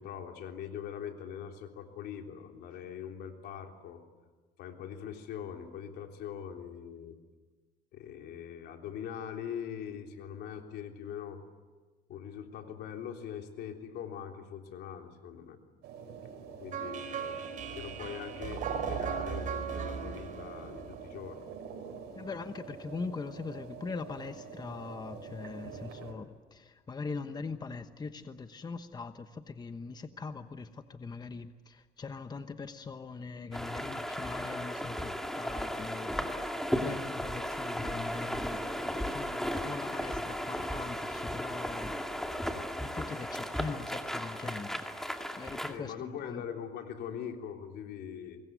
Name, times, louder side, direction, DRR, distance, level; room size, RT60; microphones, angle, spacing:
voice 1, 0.0-4.0 4.6-7.2 7.9-11.4 12.1-15.6 16.6-17.4 17.7-21.4 45.7-48.4, left 8 dB, 75° left, 3 dB, 3.5 m, -42 dB
sound 1, 15.8-26.1, right 7 dB, 80° right, 5.5 m, -43 dB
sound 2, 16.7-21.7, right 6 dB, 50° right, 5.2 m, -39 dB
voice 2, 22.2-36.4 36.8-41.9 42.8-44.8 45.4-46.4, left 4 dB, 25° left, 9 dB, 1.1 m, -41 dB
sound 3, 33.5-45.7, equal, ahead, 2.3 m, -35 dB
25.0 x 22.0 x 9.4 m, 1.3 s
cardioid pair, 110°, 17 cm